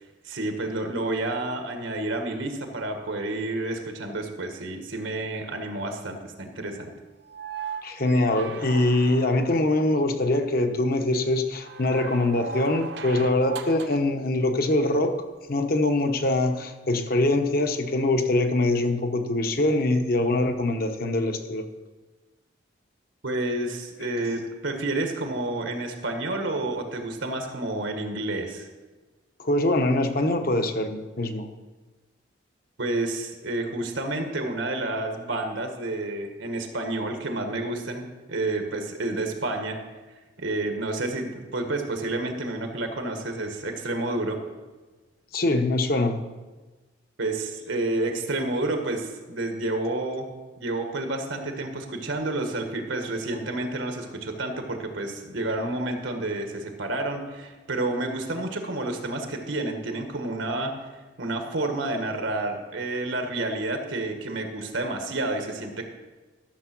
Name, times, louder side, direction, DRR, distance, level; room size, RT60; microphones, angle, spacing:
voice 1, 0.2-6.9 23.2-28.7 32.8-39.8 40.4-44.4 47.2-50.3 50.6-60.7 61.2-65.8, right 2 dB, 85° right, 5 dB, 1.5 m, -30 dB
sound 1, 7.2-9.8 11.6-14.1 15.7-15.8, right 5 dB, 60° right, 0.8 m, -37 dB
voice 2, 7.8-15.2 15.5-21.7 24.2-24.3 29.4-31.5 45.3-46.2, left 2 dB, 50° left, 6 dB, 1.0 m, -23 dB
13.0 x 6.8 x 6.1 m, 1.3 s
head